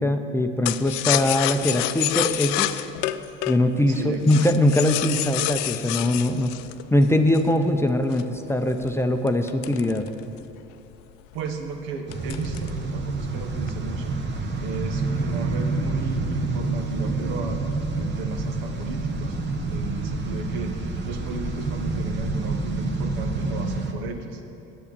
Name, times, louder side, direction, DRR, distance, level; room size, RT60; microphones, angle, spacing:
voice 1, 0.0-2.8 3.5-6.5 6.9-10.1, left 1 dB, 10° left, 5 dB, 0.6 m, -22 dB
sound 1, 0.7-7.6 8.1-10.6 10.9-11.0 11.3-11.7 12.1-12.8 13.1-13.7, left 15 dB, 70° left, 0.5 m, -28 dB
voice 2, 3.8-4.4 11.3-14.2 14.6-17.6 18.0-24.4, right 3 dB, 75° right, 5 dB, 1.3 m, -35 dB
sound 2, 12.1-23.9, right 3 dB, 35° right, 1.3 m, -28 dB
8.8 x 8.3 x 6.8 m, 2.8 s
hypercardioid pair, 90°, 30 cm